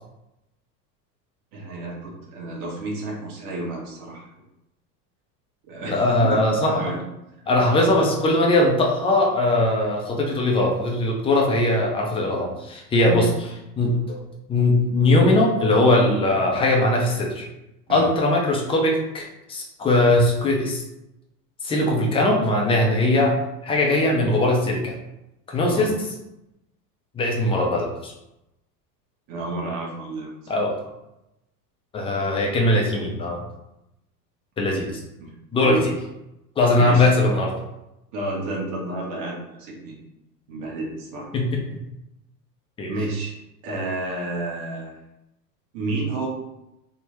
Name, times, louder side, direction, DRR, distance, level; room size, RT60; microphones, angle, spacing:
voice 1, 1.5-4.3 5.7-7.0 13.0-13.2 17.9-18.1 25.7-25.9 29.3-30.3 35.2-35.8 36.8-37.1 38.1-40.0 40.5-41.3 42.9-43.4 43.6-44.9 45.7-46.3, right 2 dB, 45° right, -3 dB, 1.2 m, -30 dB
voice 2, 5.9-6.8 7.5-13.3 13.8-14.2 14.5-17.5 17.9-20.8 21.6-23.4 23.6-24.9 25.5-26.1 27.1-28.1 30.5-30.8 31.9-33.4 34.6-34.9 35.5-35.8 36.6-37.6 41.3-41.8 42.8-42.9, left 2 dB, 10° left, -1 dB, 0.4 m, -20 dB
3.4 x 2.1 x 2.9 m, 0.90 s
hypercardioid pair, 100°, 49 cm